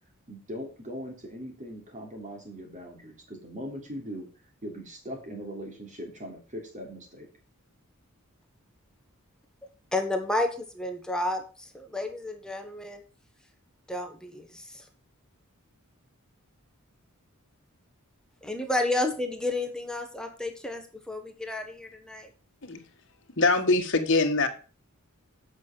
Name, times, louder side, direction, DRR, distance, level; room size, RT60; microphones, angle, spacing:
voice 1, 0.3-4.3 4.6-7.3, equal, 35° right, 1 dB, 3.2 m, -40 dB
voice 2, 9.9-13.0 13.9-14.8 18.4-22.3, left 2 dB, 5° left, 4 dB, 1.2 m, -31 dB
voice 3, 23.4-24.5, left 3 dB, 55° left, 4 dB, 1.6 m, -23 dB
8.3 x 6.3 x 6.7 m, 0.38 s
head